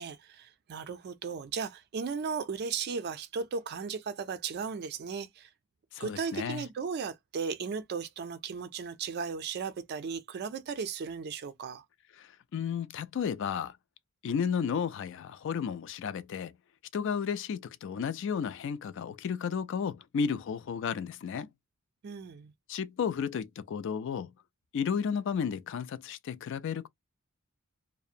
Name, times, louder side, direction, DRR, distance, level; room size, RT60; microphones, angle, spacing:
voice 1, 0.0-5.5 6.0-11.8 22.0-22.5, right 5 dB, 50° right, 0.4 m, -36 dB
voice 2, 5.9-6.6 12.2-12.3 12.5-13.7 14.2-16.5 16.9-21.5 22.7-24.3 24.7-26.9, left 7 dB, 60° left, 0.3 m, -33 dB
2.7 x 2.0 x 2.4 m
head